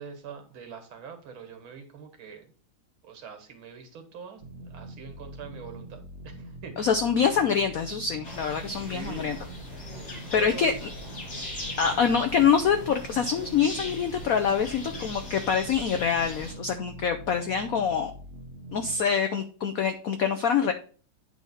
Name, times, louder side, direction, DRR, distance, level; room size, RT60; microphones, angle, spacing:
voice 1, 0.0-2.5 3.0-4.4 4.7-6.9 8.6-9.3 10.4-10.7, right 6 dB, 75° right, 6 dB, 2.2 m, -43 dB
sound 1, 4.4-19.1, right 2 dB, 45° right, 0.9 m, -44 dB
voice 2, 6.8-9.4 10.3-10.9 11.8-18.1 18.7-20.7, left 7 dB, 75° left, 7 dB, 0.8 m, -25 dB
sound 2, 8.2-16.5, left 2 dB, 40° left, 2.9 m, -40 dB
9.3 x 3.6 x 5.4 m, 0.41 s
omnidirectional pair, 2.3 m